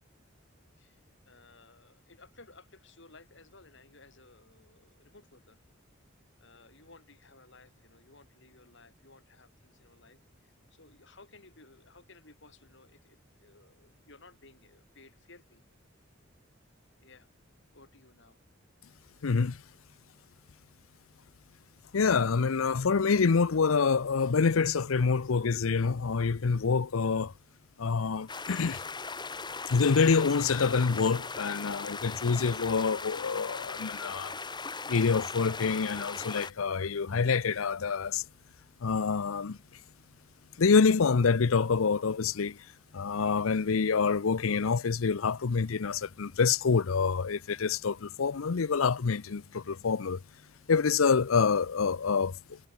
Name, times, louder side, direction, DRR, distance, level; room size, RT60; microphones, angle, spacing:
voice 1, 0.8-5.6 6.4-15.6 17.0-17.3 17.7-18.4, left 3 dB, 60° left, 6.5 m, -57 dB
voice 2, 19.2-19.6 21.9-27.3 27.8-28.8 29.7-34.3 34.9-38.2 38.8-39.6 40.6-42.6 42.9-50.2 50.7-52.6, left 5 dB, 85° left, 0.6 m, -26 dB
sound 1, 28.3-36.5, left 4 dB, 20° left, 1.8 m, -39 dB
head